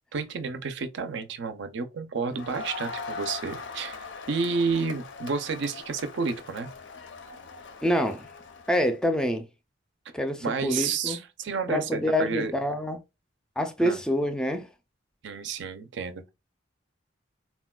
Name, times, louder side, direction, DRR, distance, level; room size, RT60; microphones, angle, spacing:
voice 1, 0.1-6.7 10.4-12.5 13.8-14.0 15.2-16.3, right 5 dB, 65° right, 0.4 m, -31 dB
Crowd, 2.3-8.9, left 4 dB, 65° left, 0.5 m, -40 dB
voice 2, 7.8-8.3 8.7-9.5 10.1-11.2 11.7-13.0 13.6-14.7, equal, 5° left, 0.4 m, -26 dB
4.1 x 2.2 x 2.2 m
head